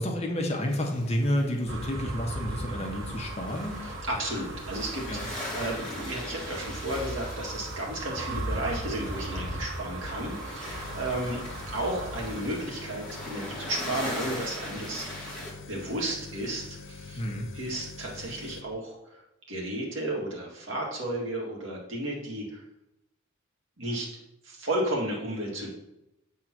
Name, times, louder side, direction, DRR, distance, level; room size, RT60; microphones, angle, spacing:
voice 1, 0.0-3.8 5.1-5.3 17.2-17.5, equal, 30° left, 1 dB, 1.1 m, -30 dB
sound 1, 0.7-15.5, left 1 dB, 5° left, 1.9 m, -41 dB
sound 2, 1.7-12.4, right 1 dB, 90° right, 1.2 m, -37 dB
voice 2, 3.8-11.4 11.7-15.4 15.7-17.2 17.5-19.2 19.5-22.6 23.8-24.1 24.4-25.7, right 1 dB, 65° right, -2 dB, 2.0 m, -33 dB
sound 3, 10.6-18.6, left 4 dB, 65° left, 0.5 m, -45 dB
7.7 x 3.7 x 6.0 m, 0.86 s
head